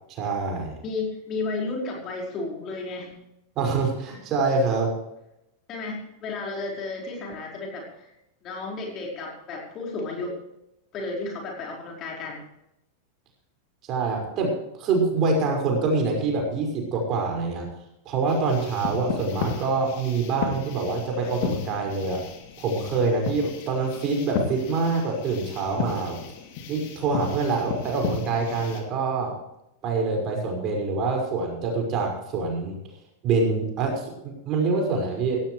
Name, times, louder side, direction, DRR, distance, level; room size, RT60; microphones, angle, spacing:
voice 1, 0.1-0.8 3.6-4.9 13.9-14.5 14.8-17.7 18.1-22.2 22.6-26.2 26.7-29.3 29.8-32.8 33.2-35.4, right 3 dB, 35° right, 2 dB, 5.6 m, -25 dB
voice 2, 0.8-3.1 5.7-8.1 8.4-10.3 10.9-12.4, left 3 dB, 30° left, -1 dB, 5.0 m, -33 dB
sound 1, 18.3-28.8, left 6 dB, 50° left, 2.7 m, -34 dB
18.0 x 16.5 x 3.3 m, 0.85 s
figure-of-eight pair, 90°, 0 cm